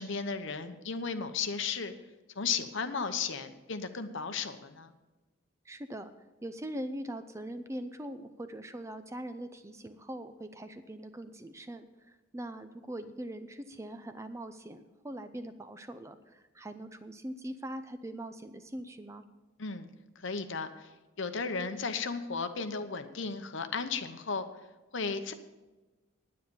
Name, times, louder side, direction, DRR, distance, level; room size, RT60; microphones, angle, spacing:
voice 1, 0.0-1.9 2.4-4.9 19.6-19.9 20.2-20.9 21.2-24.5 24.9-25.3, left 5 dB, 60° left, 9 dB, 0.9 m, -35 dB
voice 2, 5.7-6.1 6.4-19.2, right 1 dB, 15° right, 10 dB, 0.5 m, -42 dB
9.7 x 9.6 x 6.9 m, 1.1 s
head